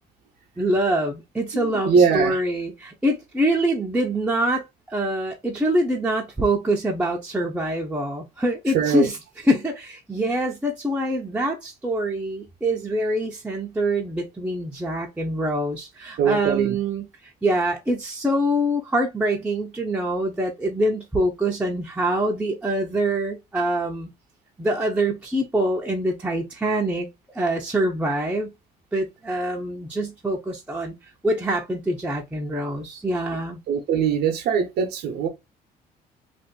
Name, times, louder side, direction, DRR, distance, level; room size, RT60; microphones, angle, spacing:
voice 1, 0.6-17.1 17.4-24.1 24.6-27.1 27.3-28.5 28.9-31.0 31.2-33.6, right 1 dB, 5° right, 0.6 m, -25 dB
voice 2, 1.5-2.4 8.7-9.1 16.2-16.8 33.7-35.3, right 6 dB, 75° right, 0.7 m, -21 dB
2.6 x 2.5 x 3.6 m
cardioid pair, 110°, 17 cm